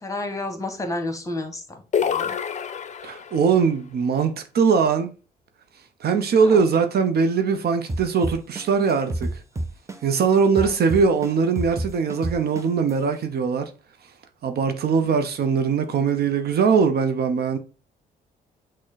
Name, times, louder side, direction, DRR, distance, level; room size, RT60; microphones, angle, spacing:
voice 1, 0.0-2.4 6.4-6.6 10.6-10.7, left 2 dB, 15° left, 1.1 m, -31 dB
sound 1, 1.9-3.5, left 7 dB, 40° left, 0.5 m, -26 dB
voice 2, 3.0-5.1 5.7-9.4 10.0-13.7 14.0-14.2 14.4-17.6, right 5 dB, 55° right, 0.6 m, -21 dB
sound 2, 7.9-10.2 10.6-12.9, right 1 dB, 15° right, 0.7 m, -29 dB
6.1 x 2.1 x 3.8 m
hypercardioid pair, 50°, 20 cm